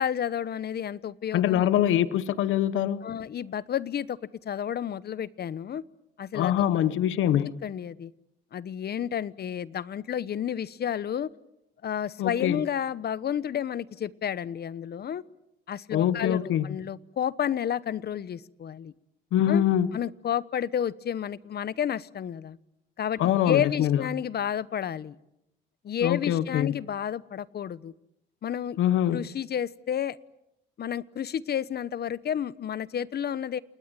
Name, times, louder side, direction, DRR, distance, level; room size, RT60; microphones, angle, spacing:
voice 1, 0.0-1.7 3.0-4.2 4.4-5.8 6.2-6.6 7.6-8.1 8.5-11.3 11.8-15.2 15.7-18.9 19.5-19.6 19.9-22.6 23.0-25.2 25.8-27.9 28.4-28.8 29.1-30.2 30.8-33.6, left 9 dB, 55° left, 18 dB, 1.0 m, -31 dB
voice 2, 1.3-3.1 6.3-7.6 12.2-12.6 15.9-16.7 19.3-19.9 23.2-24.0 26.0-26.7 28.8-29.2, left 11 dB, 80° left, 16 dB, 1.0 m, -24 dB
28.5 x 19.5 x 9.1 m, 0.85 s
cardioid pair, 90°, 20 cm